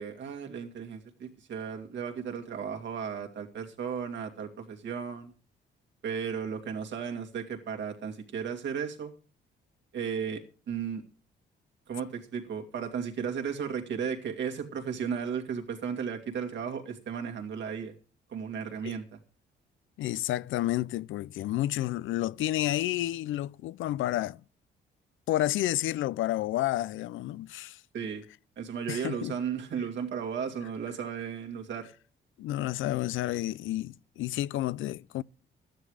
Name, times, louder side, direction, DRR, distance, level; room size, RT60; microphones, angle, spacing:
voice 1, 0.0-5.3 6.0-9.1 9.9-11.0 11.9-17.9 18.3-19.2 27.9-28.2 28.6-31.9, right 7 dB, 65° right, 2.6 m, -35 dB
voice 2, 20.0-24.4 25.3-27.8 28.9-29.3 32.4-35.2, left 14 dB, 80° left, 0.5 m, -30 dB
13.0 x 10.5 x 4.9 m
cardioid pair, 90°, 20 cm